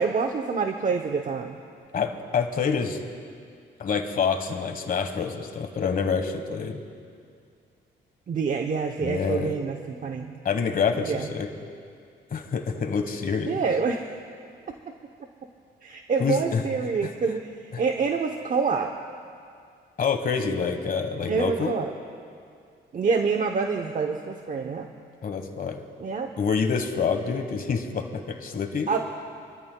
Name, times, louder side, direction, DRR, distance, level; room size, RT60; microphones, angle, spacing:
voice 1, 0.0-1.6 8.3-10.4 11.1-11.3 13.5-14.0 15.8-17.5 17.8-18.9 21.3-21.9 22.9-24.9 26.0-26.3 28.9-29.0, right 5 dB, 45° right, 4 dB, 0.8 m, -26 dB
voice 2, 1.9-3.0 3.8-6.8 9.0-9.5 10.4-11.5 12.3-13.6 16.2-16.6 17.0-17.1 17.7-17.8 20.0-21.7 25.2-25.8 26.4-28.9, left 6 dB, 45° left, 6 dB, 1.3 m, -27 dB
27.5 x 13.0 x 2.3 m, 2.3 s
cardioid pair, 90°, 20 cm